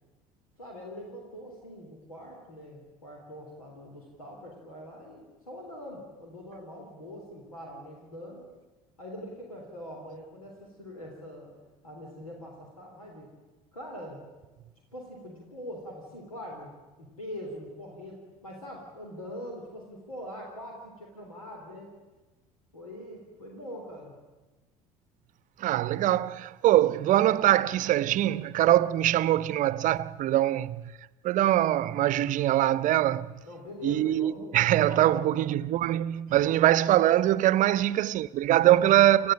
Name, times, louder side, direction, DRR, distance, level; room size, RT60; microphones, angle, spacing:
voice 1, 0.6-8.4 9.0-11.5 11.8-13.3 13.7-14.2 14.9-16.7 17.0-21.9 22.7-24.1 33.4-35.5 37.7-37.8 38.6-38.8, equal, 85° left, 3.8 m, -43 dB
voice 2, 25.6-30.9 31.2-33.3 33.8-39.3, right 13 dB, 45° right, 0.8 m, -23 dB
28.5 x 14.5 x 8.9 m
figure-of-eight pair, 60°, 18 cm